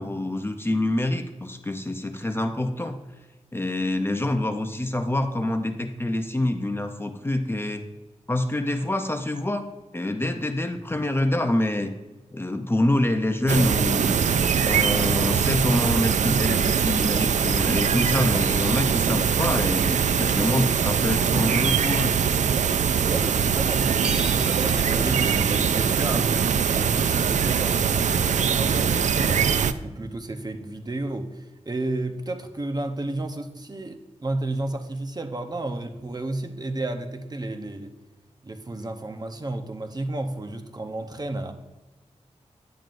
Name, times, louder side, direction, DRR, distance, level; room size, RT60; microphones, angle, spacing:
voice 1, 0.0-3.0 3.5-7.8 8.3-9.7 9.9-11.9 12.3-14.2 14.6-22.1, left 1 dB, 20° left, 7 dB, 0.6 m, -26 dB
sound 1, 13.5-29.7, right 7 dB, 80° right, 0.4 m, -22 dB
voice 2, 23.0-28.1 28.6-29.5 29.8-37.9 38.4-41.5, right 2 dB, 35° right, 6 dB, 0.8 m, -32 dB
sound 2, 24.0-27.0 28.2-28.3 28.6-28.7, right 1 dB, 10° right, 2.5 m, -43 dB
10.5 x 9.1 x 2.6 m, 1.1 s
wide cardioid pair, 75°, 12 cm